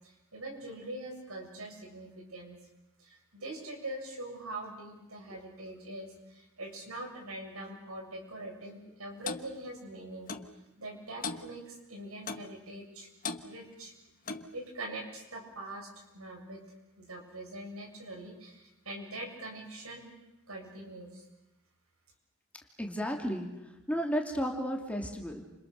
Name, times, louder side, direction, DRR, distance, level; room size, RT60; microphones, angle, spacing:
voice 1, 0.0-2.6 3.0-10.3 10.8-13.1 13.4-13.9 14.5-16.6 17.0-20.1 20.5-21.3, right 1 dB, 80° right, 2 dB, 7.5 m, -43 dB
Clock, 9.3-9.5 10.3-10.5 11.2-11.5 12.3-12.5 13.2-13.4 14.3-14.5, left 4 dB, 40° left, 1.3 m, -37 dB
voice 2, 22.8-23.5 23.9-25.4, equal, 5° left, 1 dB, 2.9 m, -32 dB
30.0 x 28.0 x 6.8 m, 0.94 s
head